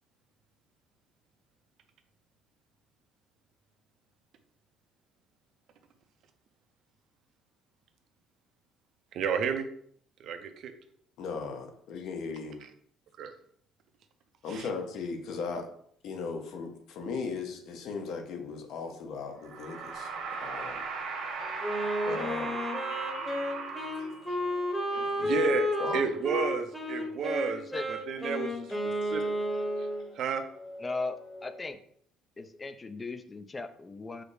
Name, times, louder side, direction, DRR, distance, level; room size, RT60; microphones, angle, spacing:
voice 1, 9.1-9.7 10.2-10.7 13.2-13.3 14.5-14.7 25.2-29.2 29.8-29.9 30.1-30.4, right 7 dB, 55° right, 7 dB, 0.5 m, -32 dB
voice 2, 11.2-12.6 14.4-15.7 16.0-20.1 20.4-20.9 22.1-22.6 24.0-24.4 25.0-26.1, left 5 dB, 65° left, 4 dB, 0.8 m, -37 dB
sound 1, 19.2-31.7, left 1 dB, 80° left, 1.6 m, -49 dB
sound 2, 19.4-24.5, right 4 dB, 70° right, 1.2 m, -37 dB
Wind instrument woodwind instrument, 21.6-30.0, left 1 dB, ahead, 0.8 m, -32 dB
voice 3, 30.8-31.8 32.4-34.2, left 3 dB, 20° left, 9 dB, 0.3 m, -37 dB
4.8 x 2.0 x 4.7 m, 0.63 s
cardioid pair, 145°, 0 cm